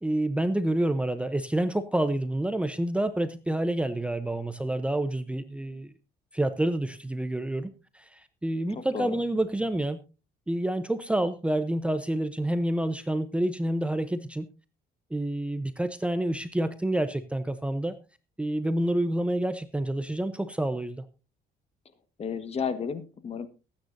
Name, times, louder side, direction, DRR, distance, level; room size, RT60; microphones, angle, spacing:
voice 1, 0.0-5.9 6.3-10.0 10.5-14.5 15.1-18.0 18.4-21.1, right 1 dB, 5° right, 10 dB, 0.8 m, -28 dB
voice 2, 8.7-9.2 22.2-23.5, left 6 dB, 35° left, 11 dB, 1.5 m, -33 dB
22.0 x 9.3 x 2.7 m, 0.31 s
cardioid pair, 110°, 17 cm